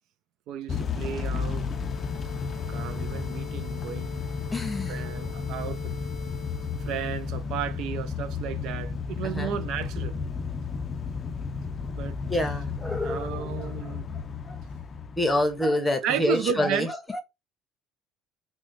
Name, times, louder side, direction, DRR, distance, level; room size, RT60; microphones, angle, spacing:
voice 1, 0.5-1.7 2.7-4.2 4.9-5.9 6.8-10.1 11.9-12.4 13.0-14.1 16.0-16.9, right 9 dB, 70° right, 0.3 m, -33 dB
Motor vehicle (road) / Engine starting / Accelerating revving vroom, 0.7-15.7, left 5 dB, 35° left, 0.3 m, -33 dB
sound 1, 1.3-7.4, left 9 dB, 40° right, 1.7 m, -45 dB
voice 2, 4.5-5.1 9.2-9.6 12.3-14.0 14.5-14.6 15.2-16.9, left 1 dB, 10° left, 0.7 m, -27 dB
3.1 x 2.1 x 3.1 m
cardioid pair, 110°, 0 cm